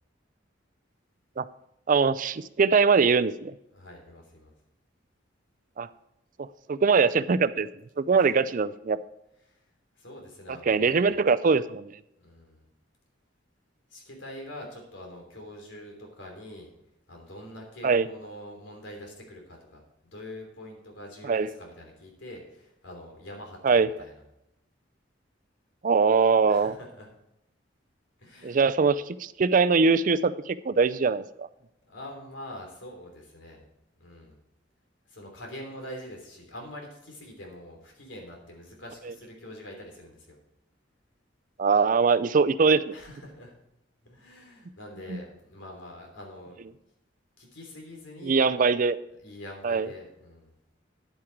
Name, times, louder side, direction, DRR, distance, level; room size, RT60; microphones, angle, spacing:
voice 1, 1.9-3.5 5.8-5.9 6.4-7.7 8.0-9.0 10.7-11.9 17.8-18.1 21.2-21.5 23.6-23.9 25.8-26.7 28.4-31.5 41.6-42.9 45.1-45.2 48.2-49.0 49.6-49.9, right 5 dB, 45° right, 14 dB, 0.4 m, -22 dB
voice 2, 3.7-4.5 8.1-8.3 9.5-9.6 10.0-11.2 12.2-12.7 13.9-16.7 17.1-19.8 20.1-24.1 26.5-27.1 28.2-28.6 31.9-33.6 34.0-34.4 35.1-40.4 42.9-43.5 44.0-46.6 47.4-48.4 49.2-50.5, left 1 dB, 90° left, 1 dB, 3.2 m, -44 dB
10.0 x 8.7 x 4.6 m, 0.84 s
head